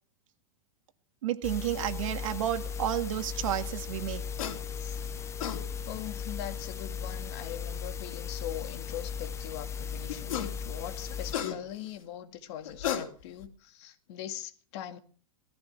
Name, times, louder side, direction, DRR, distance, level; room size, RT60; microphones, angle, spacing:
voice 1, 1.2-4.2, right 12 dB, 70° right, 1.9 m, -31 dB
sound 1, 1.4-11.4, left 7 dB, 15° left, 0.7 m, -37 dB
sound 2, 4.4-4.6 5.2-5.6 7.0-7.1 10.1-10.6 10.9-11.9 12.6-13.5, left 9 dB, 75° left, 3.2 m, -34 dB
voice 2, 5.9-15.0, left 11 dB, 55° left, 2.1 m, -41 dB
19.0 x 14.5 x 4.6 m
hypercardioid pair, 140°, 18 cm